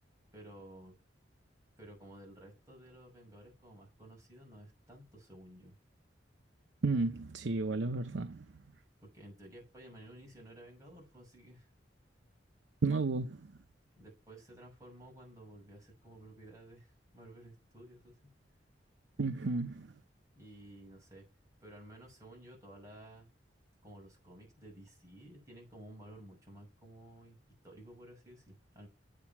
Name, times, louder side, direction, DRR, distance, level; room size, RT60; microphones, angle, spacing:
voice 1, 0.3-0.9 1.8-5.8 9.1-11.7 14.0-18.3 20.3-21.3 21.6-23.3 23.8-27.4 27.6-28.9, right 1 dB, 20° right, 6.2 m, -54 dB
voice 2, 6.8-8.5 12.8-13.5 19.2-19.9, right 3 dB, 75° right, 0.7 m, -32 dB
9.2 x 8.8 x 5.8 m
head